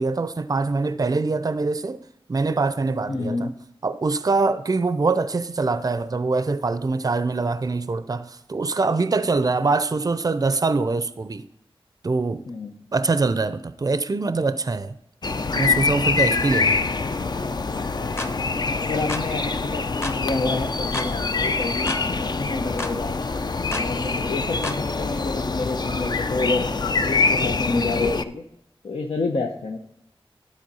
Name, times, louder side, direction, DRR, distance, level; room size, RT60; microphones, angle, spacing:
voice 1, 0.0-2.0 2.3-3.5 3.8-11.4 12.0-12.4 12.9-15.0 15.6-16.8, right 3 dB, 40° right, 0.5 m, -23 dB
voice 2, 3.1-3.5 12.5-12.8 18.7-23.1 23.7-26.7 27.1-28.4 28.8-29.8, left 3 dB, 80° left, 0.8 m, -28 dB
sound 1, 15.2-28.3, left 4 dB, 45° left, 0.5 m, -25 dB
sound 2, 18.2-18.4 19.1-19.3 20.0-20.2 20.9-21.1 21.9-22.1 22.8-23.0 23.7-23.9 24.6-24.8, left 1 dB, 25° left, 0.9 m, -31 dB
11.5 x 4.2 x 5.4 m
wide cardioid pair, 65°, 10 cm